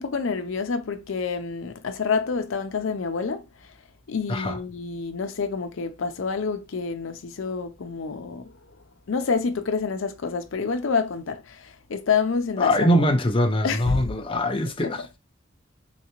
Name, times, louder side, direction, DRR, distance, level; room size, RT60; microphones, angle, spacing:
voice 1, 0.0-3.7 4.1-8.6 9.1-13.1 13.6-14.1 14.8-14.9, left 5 dB, 85° left, 0.5 m, -28 dB
voice 2, 12.6-15.2, equal, 25° left, 0.6 m, -23 dB
3.8 x 3.2 x 3.0 m
head